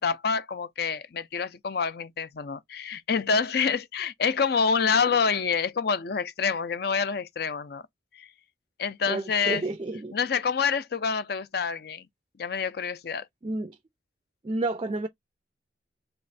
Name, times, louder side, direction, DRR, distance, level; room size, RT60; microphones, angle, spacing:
voice 1, 0.0-7.8 8.2-8.3 8.8-9.6 10.1-12.1 12.4-13.2, left 5 dB, 60° left, 0.5 m, -27 dB
voice 2, 9.1-10.2 13.4-13.8 14.4-15.1, right 2 dB, 30° right, 0.4 m, -30 dB
3.4 x 3.1 x 3.9 m
head